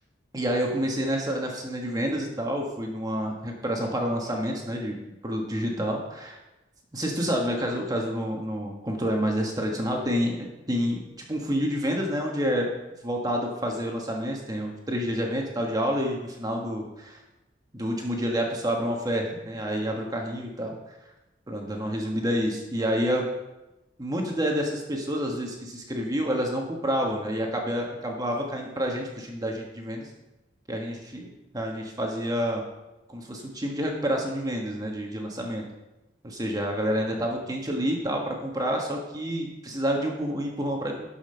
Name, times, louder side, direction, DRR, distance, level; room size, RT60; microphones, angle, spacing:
voice 1, 0.3-4.9 5.2-6.4 6.9-12.7 13.0-17.2 17.7-20.8 21.5-23.3 24.0-30.0 30.7-32.6 33.1-35.6 36.2-41.1, equal, 20° right, 1 dB, 1.4 m, -28 dB
12.0 x 5.7 x 5.7 m, 0.99 s
head